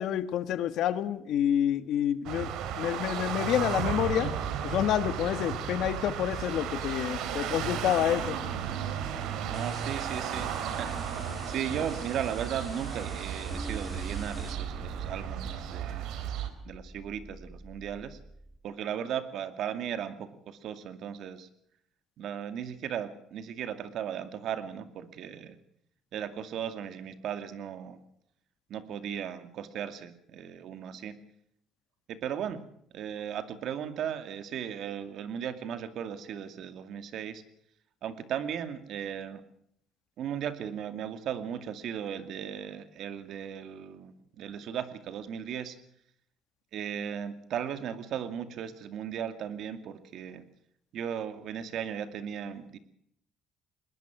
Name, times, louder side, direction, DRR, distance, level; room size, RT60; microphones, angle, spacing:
voice 1, 0.0-2.5 2.8-4.3 4.6-8.4, left 10 dB, 65° left, 12 dB, 1.6 m, -28 dB
sound 1, 2.2-16.5, right 8 dB, 75° right, 3.1 m, -34 dB
sound 2, 9.5-14.5, left 3 dB, 15° left, 3.7 m, -49 dB
voice 2, 9.5-16.1 16.6-18.2 18.6-21.5 22.2-25.6 26.1-28.0 28.7-31.2 32.1-32.6 32.9-37.4 38.0-39.4 40.2-45.8 46.7-50.4 50.9-52.8, right 9 dB, 60° right, 10 dB, 2.3 m, -36 dB
sound 3, 13.5-18.6, right 2 dB, 20° right, 1.6 m, -44 dB
21.0 x 20.0 x 6.1 m, 0.68 s
cardioid pair, 130°, 0 cm